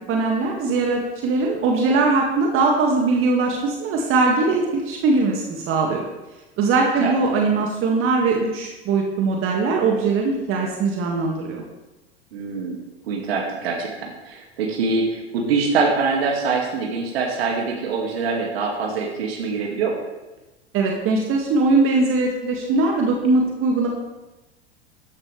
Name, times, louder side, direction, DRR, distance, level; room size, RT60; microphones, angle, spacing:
voice 1, 0.1-6.0 6.6-11.6 20.7-23.9, right 3 dB, 40° right, 0 dB, 2.1 m, -21 dB
voice 2, 12.3-12.8 13.1-19.9, right 4 dB, 65° right, -1 dB, 2.3 m, -24 dB
14.5 x 11.5 x 3.4 m, 1.1 s
figure-of-eight pair, 85°, 33 cm